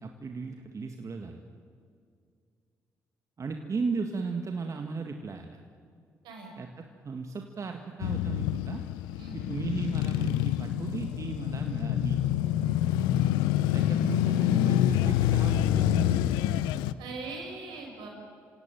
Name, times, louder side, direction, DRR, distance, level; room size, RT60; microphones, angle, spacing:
voice 1, 0.0-1.4 3.4-5.6 6.6-8.8 9.3-12.2 13.7-16.4, right 4 dB, 45° right, 4 dB, 1.9 m, -36 dB
Male speech man speaking / Motorcycle / Idling, 8.0-16.9, left 12 dB, 80° left, 0.6 m, -26 dB
voice 2, 17.0-18.1, right 3 dB, 75° right, 1 dB, 6.0 m, -40 dB
27.5 x 17.0 x 9.4 m, 2.3 s
hypercardioid pair, 45°, 7 cm